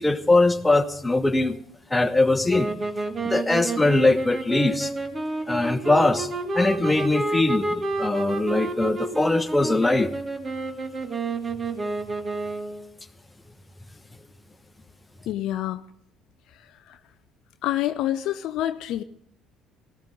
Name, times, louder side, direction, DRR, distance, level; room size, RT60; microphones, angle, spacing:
voice 1, 0.0-1.6 1.9-2.7 3.2-4.9 5.5-6.3 6.5-10.1, left 2 dB, 15° left, 10 dB, 1.2 m, -21 dB
sound 1, 2.5-12.9, right 3 dB, 30° right, 2.1 m, -30 dB
voice 2, 15.3-15.8 16.9-17.0 17.6-19.0, left 13 dB, 55° left, 10 dB, 0.5 m, -27 dB
18.0 x 16.0 x 3.7 m, 0.69 s
figure-of-eight pair, 55°, 0 cm